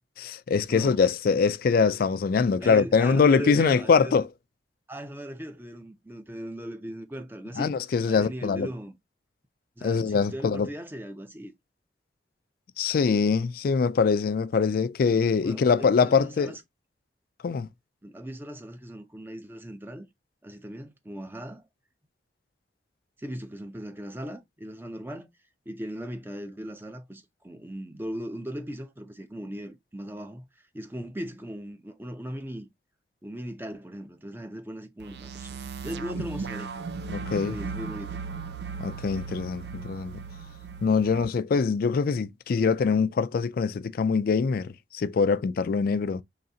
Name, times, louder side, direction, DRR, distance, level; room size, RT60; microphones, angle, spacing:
voice 1, 0.2-4.3 7.6-8.7 9.8-10.7 12.8-16.6 17.4-17.7 37.1-37.6 38.8-40.1 40.8-46.2, left 5 dB, 55° left, 0.3 m, -23 dB
voice 2, 0.7-1.0 2.6-4.2 4.9-7.7 8.1-9.0 9.8-11.5 15.1-16.6 18.0-20.1 20.4-21.6 23.2-25.3 25.7-30.5 30.7-32.7 33.2-36.7 37.3-38.2, equal, 10° right, 0.5 m, -38 dB
sound 1, 35.0-41.2, right 5 dB, 65° right, 0.5 m, -37 dB
3.9 x 3.2 x 2.7 m
head